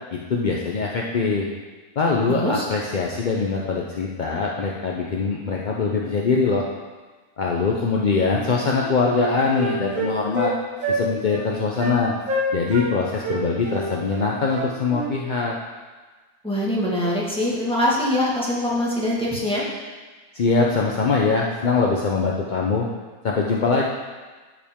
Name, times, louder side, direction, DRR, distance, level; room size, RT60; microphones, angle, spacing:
voice 1, 0.1-1.5 2.0-6.6 7.4-10.5 10.9-12.1 12.5-15.6 20.3-22.9 23.2-23.8, left 4 dB, 55° left, -2 dB, 0.5 m, -22 dB
voice 2, 2.3-2.7 16.4-19.6, left 1 dB, 5° left, -6 dB, 1.6 m, -23 dB
Wind instrument woodwind instrument, 8.3-8.5 8.8-10.5 10.8-11.0 11.3-11.4 11.8-12.0 12.3-12.9 13.2-15.1, right 2 dB, 65° right, 1.7 m, -27 dB
13.0 x 4.9 x 3.6 m, 1.3 s
omnidirectional pair, 1.6 m